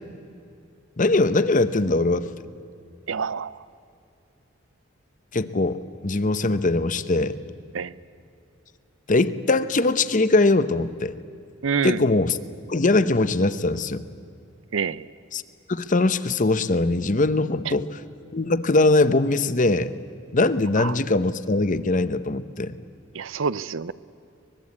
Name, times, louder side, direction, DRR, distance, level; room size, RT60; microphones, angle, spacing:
voice 1, 1.0-2.3 5.3-7.4 9.1-11.2 11.8-12.4 12.7-14.0 15.3-15.4 15.7-17.9 18.3-19.9 20.3-22.8, left 2 dB, 40° left, 13 dB, 0.9 m, -21 dB
voice 2, 3.1-3.6 7.7-7.9 11.6-12.0 14.7-15.1 17.6-17.8 20.8-20.9 23.1-23.9, right 5 dB, 80° right, 18 dB, 0.6 m, -27 dB
24.0 x 21.0 x 8.5 m, 2.5 s
head